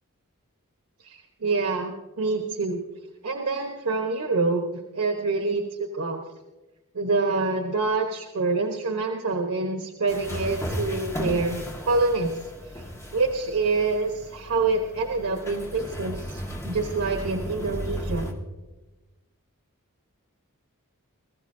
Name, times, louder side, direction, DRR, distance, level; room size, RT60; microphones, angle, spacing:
voice 1, 1.0-2.8 3.2-4.6 4.9-6.2 6.9-12.3 12.7-12.8 13.1-18.3, right 3 dB, 90° right, 2 dB, 1.1 m, -26 dB
sound 1, 10.1-18.3, equal, 15° left, 1.6 m, -35 dB
20.5 x 15.0 x 2.7 m, 1.1 s
head